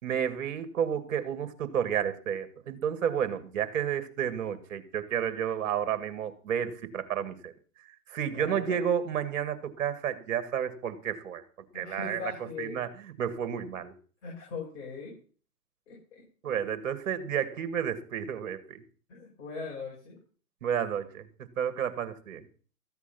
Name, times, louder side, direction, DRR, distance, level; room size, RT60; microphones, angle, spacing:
voice 1, 0.0-7.5 8.1-11.4 11.7-12.3 12.6-12.9 13.2-13.9 16.4-18.8 20.6-22.5, right 8 dB, 55° right, 11 dB, 2.1 m, -31 dB
voice 2, 8.3-8.8 11.7-12.8 14.2-15.2 15.9-16.5 19.1-20.2, left 4 dB, 45° left, -3 dB, 6.2 m, -40 dB
14.5 x 8.2 x 5.9 m, 0.41 s
hypercardioid pair, 140°, 47 cm